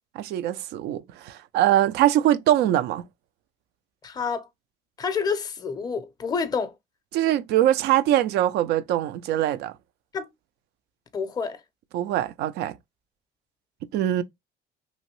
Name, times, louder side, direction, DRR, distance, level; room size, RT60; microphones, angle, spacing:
voice 1, 0.2-3.0 7.1-9.7 11.9-12.8 13.9-14.2, right 12 dB, 80° right, 0.4 m, -22 dB
voice 2, 4.0-4.5 5.0-6.7 10.1-10.3 11.1-11.6, left 5 dB, 25° left, 0.5 m, -28 dB
3.0 x 2.6 x 2.9 m
cardioid pair, 110°, 17 cm